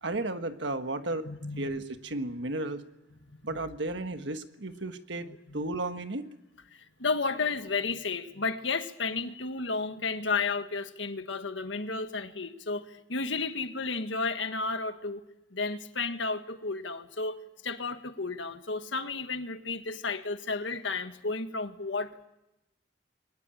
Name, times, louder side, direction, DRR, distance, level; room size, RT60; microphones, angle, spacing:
voice 1, 0.0-1.3 1.6-2.8 3.4-5.2 5.5-6.3, right 2 dB, 70° right, 8 dB, 1.5 m, -33 dB
voice 2, 1.3-1.7 3.3-3.6 5.5-5.6 6.7-15.2 15.5-17.4 17.6-22.3, left 4 dB, 75° left, 8 dB, 1.7 m, -32 dB
22.0 x 19.0 x 9.0 m, 0.92 s
head